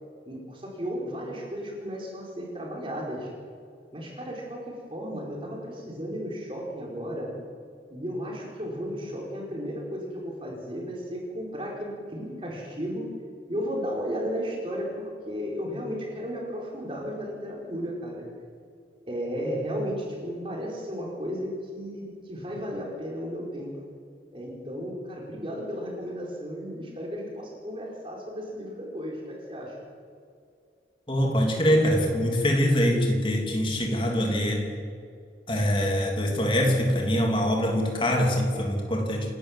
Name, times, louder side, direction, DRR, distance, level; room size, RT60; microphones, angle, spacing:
voice 1, 0.3-3.3 3.9-7.3 7.9-13.1 13.5-18.2 19.1-23.8 24.3-29.9, equal, 30° right, -2 dB, 4.7 m, -34 dB
voice 2, 31.1-34.7 35.5-39.3, equal, 30° left, 1 dB, 3.1 m, -24 dB
28.5 x 12.0 x 7.5 m, 2.3 s
head